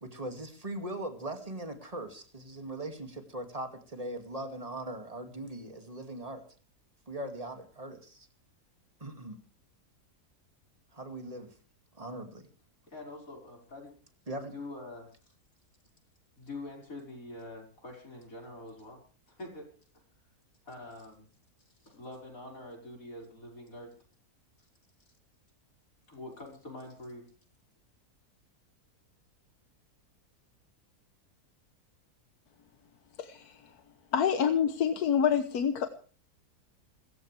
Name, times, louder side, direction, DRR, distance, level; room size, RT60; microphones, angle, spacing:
voice 1, 0.0-6.5 7.1-8.3 9.0-9.4 10.9-11.5 11.9-12.5 14.3-14.5, right 1 dB, 25° right, 6 dB, 2.3 m, -40 dB
voice 2, 12.9-13.9 14.5-15.3 16.4-20.0 20.6-21.3 21.7-24.0 24.6-24.7 26.1-27.3, left 2 dB, 60° left, 0 dB, 5.8 m, -45 dB
voice 3, 33.2-33.7 34.1-35.9, left 8 dB, 75° left, 8 dB, 1.6 m, -27 dB
26.5 x 15.0 x 3.4 m, 0.40 s
omnidirectional pair, 1.6 m